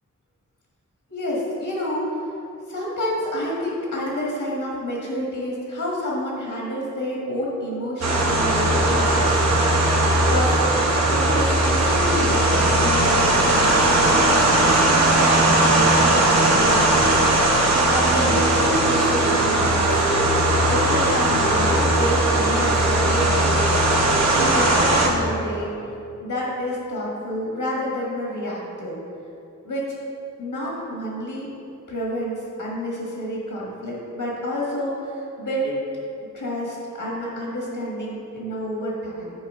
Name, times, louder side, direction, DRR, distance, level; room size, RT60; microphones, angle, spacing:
voice 1, 1.1-2.2 2.7-9.3 10.2-10.6 11.1-17.2 17.9-20.0 20.7-23.8 24.3-25.7 26.2-29.0 29.6-29.9 30.4-31.5 31.9-35.8 36.3-39.3, equal, 90° left, -4 dB, 1.5 m, -28 dB
sound 1, 8.0-25.1, right 1 dB, 60° right, 1.0 m, -18 dB
9.4 x 4.7 x 3.6 m, 2.8 s
wide cardioid pair, 115°, 31 cm